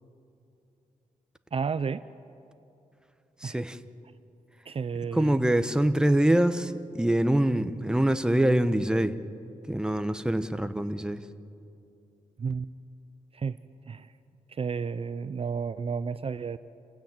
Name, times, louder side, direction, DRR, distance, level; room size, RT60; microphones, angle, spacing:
voice 1, 1.5-2.0 3.4-3.6 4.7-5.4 12.4-12.7 13.3-13.6 13.9-14.1 14.5-16.6, right 5 dB, 45° right, 13 dB, 0.6 m, -32 dB
voice 2, 3.4-3.8 5.1-9.2 9.7-11.2, right 1 dB, 5° right, 10 dB, 1.0 m, -24 dB
28.5 x 16.0 x 8.9 m, 2.7 s
wide cardioid pair, 100°, 14 cm